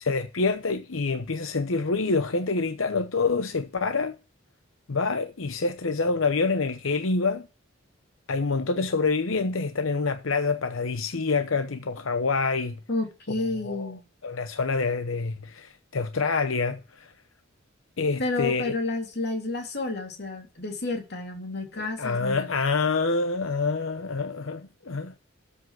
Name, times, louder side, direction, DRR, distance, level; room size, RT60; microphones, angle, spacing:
voice 1, 0.0-4.2 4.9-7.5 8.3-12.8 13.6-13.9 14.2-17.1 18.0-18.8 21.8-25.2, left 4 dB, 85° left, 0.9 m, -27 dB
voice 2, 12.9-14.0 18.2-22.5, left 2 dB, 55° left, 3.1 m, -30 dB
13.0 x 5.5 x 7.6 m
head